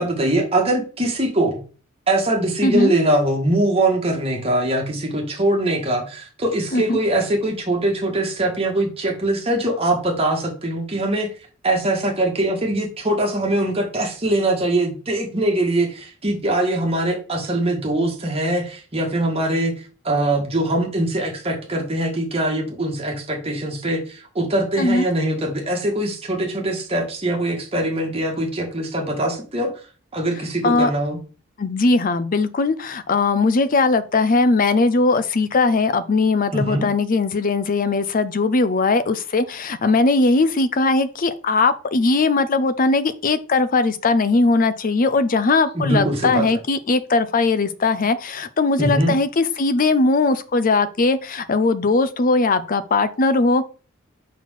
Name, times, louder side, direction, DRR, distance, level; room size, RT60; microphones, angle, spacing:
voice 1, 0.0-1.6 2.1-11.3 11.6-19.7 20.0-29.7 30.1-31.2 36.5-36.9 45.7-46.4 48.8-49.2, right 1 dB, 30° right, 1.6 m, -22 dB
voice 2, 2.6-2.9 6.7-7.0 24.8-25.1 30.6-30.9 31.6-53.7, left 3 dB, 40° left, 0.5 m, -19 dB
4.4 x 4.2 x 5.6 m
head